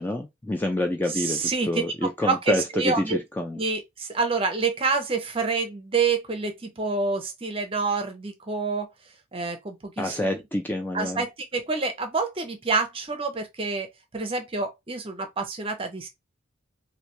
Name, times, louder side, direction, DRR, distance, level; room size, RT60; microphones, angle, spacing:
voice 1, 0.0-3.6 10.0-11.2, left 1 dB, 10° left, 0.4 m, -27 dB
voice 2, 1.1-1.8 2.2-3.2 3.6-8.9 9.3-10.4 10.9-13.9 14.1-16.1, right 4 dB, 25° right, 0.7 m, -27 dB
3.2 x 2.7 x 3.0 m
head